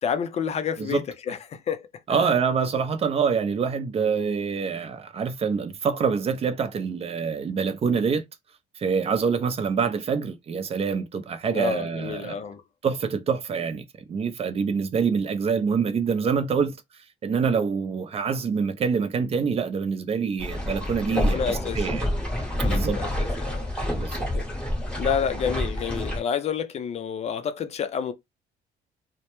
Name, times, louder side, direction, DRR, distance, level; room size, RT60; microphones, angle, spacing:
voice 1, 0.0-2.4 11.4-12.6 21.0-21.9 22.5-23.7 24.0-24.5 25.0-28.1, left 7 dB, 40° left, 0.4 m, -30 dB
voice 2, 2.1-8.2 8.8-12.4 12.8-16.7 17.2-22.1 22.6-23.0 24.0-24.3, right 6 dB, 35° right, 0.5 m, -26 dB
sound 1, 20.4-26.2, left 1 dB, 5° left, 0.9 m, -28 dB
2.1 x 2.1 x 2.9 m
cardioid pair, 110°, 17 cm